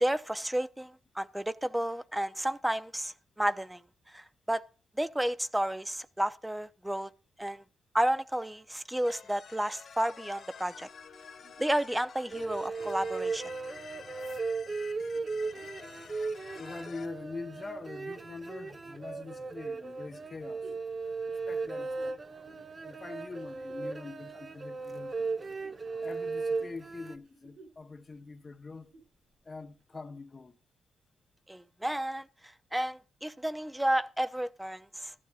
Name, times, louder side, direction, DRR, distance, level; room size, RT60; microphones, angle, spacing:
voice 1, 0.0-3.8 4.1-4.6 5.0-7.1 7.4-7.6 7.9-10.9 11.6-13.4 31.5-35.1, right 1 dB, 5° right, 0.6 m, -32 dB
sound 1, 9.0-17.1, left 7 dB, 65° left, 1.9 m, -50 dB
Chuckle chortle, 11.1-16.7 17.3-17.4 20.1-24.1 24.7-26.2 26.4-26.7 27.2-27.9 28.2-28.3 28.7-29.2 29.8-29.9, right 3 dB, 65° right, 6.8 m, -58 dB
sound 2, 12.3-27.2, right 4 dB, 35° right, 0.9 m, -37 dB
voice 2, 16.5-20.7 21.5-22.2 22.8-25.3 26.0-28.9 29.4-30.6, left 3 dB, 35° left, 0.9 m, -44 dB
14.0 x 12.0 x 2.4 m
cardioid pair, 85°, 0 cm